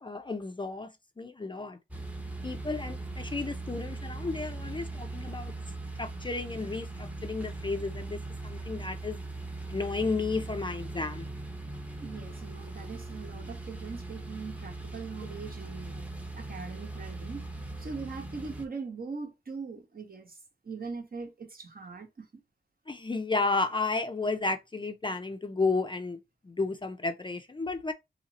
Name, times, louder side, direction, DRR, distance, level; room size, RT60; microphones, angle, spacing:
voice 1, 0.0-1.8 2.4-5.5 6.0-9.2 9.7-11.3 22.9-27.9, left 3 dB, 25° left, 0.4 m, -32 dB
sound 1, 1.9-18.7, right 2 dB, 5° right, 0.7 m, -40 dB
voice 2, 12.0-16.0 16.3-17.4 17.8-20.4 20.6-22.4, right 4 dB, 50° right, 1.1 m, -41 dB
2.8 x 2.7 x 4.0 m
wide cardioid pair, 115°, 19 cm